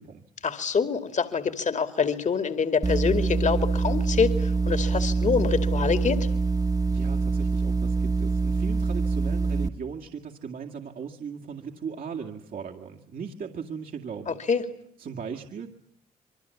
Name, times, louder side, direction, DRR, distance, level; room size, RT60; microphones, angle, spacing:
voice 1, 0.4-6.3 14.3-14.6, left 5 dB, 45° left, 9 dB, 2.5 m, -26 dB
sound 1, 2.8-9.7, right 3 dB, 20° right, 1.6 m, -25 dB
voice 2, 6.9-14.4 15.0-15.7, right 6 dB, 60° right, 2 dB, 2.2 m, -38 dB
26.5 x 24.0 x 8.5 m, 0.71 s
hypercardioid pair, 55°, 17 cm